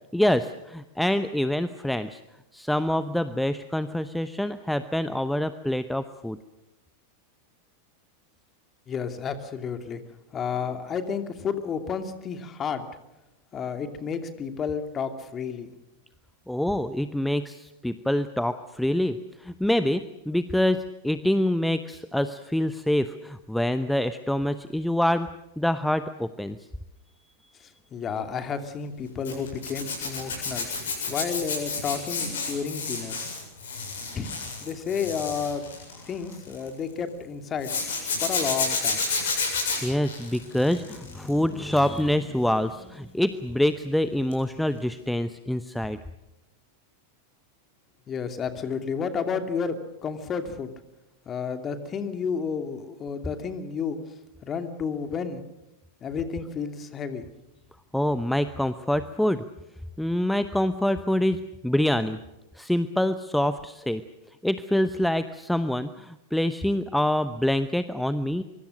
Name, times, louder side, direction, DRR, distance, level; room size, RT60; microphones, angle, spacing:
voice 1, 0.1-2.2 2.5-6.4 16.5-25.3 25.6-26.6 39.8-46.0 57.9-59.4 60.0-62.2 62.5-64.0 64.4-68.4, left 1 dB, ahead, 12 dB, 0.9 m, -26 dB
voice 2, 8.9-10.0 10.3-12.9 13.5-15.7 27.6-30.7 31.1-33.2 34.1-35.6 36.0-37.7 38.2-39.0 48.1-49.8 50.0-50.7 51.3-54.0 54.4-55.4 56.0-57.3, left 6 dB, 25° left, 8 dB, 2.6 m, -31 dB
Zipper (clothing), 29.2-36.7 37.6-41.3 41.6-42.0 44.3-44.5 44.7-44.8, left 4 dB, 60° left, 7.9 m, -30 dB
24.5 x 24.0 x 6.4 m, 0.93 s
figure-of-eight pair, 90°, 0 cm